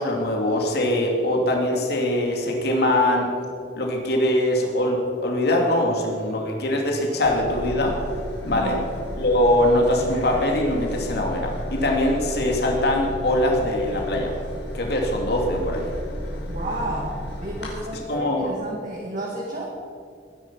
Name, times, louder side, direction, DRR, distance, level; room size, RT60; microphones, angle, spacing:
voice 1, 0.0-3.3 3.8-8.0 8.4-8.8 9.2-14.3 14.7-15.9 18.1-18.5, left 1 dB, 65° left, 1 dB, 2.7 m, -22 dB
sound 1, 7.2-17.7, equal, 85° left, 5.1 m, -33 dB
voice 2, 16.5-19.7, right 1 dB, 50° right, -3 dB, 2.3 m, -31 dB
20.5 x 10.5 x 5.7 m, 2.3 s
head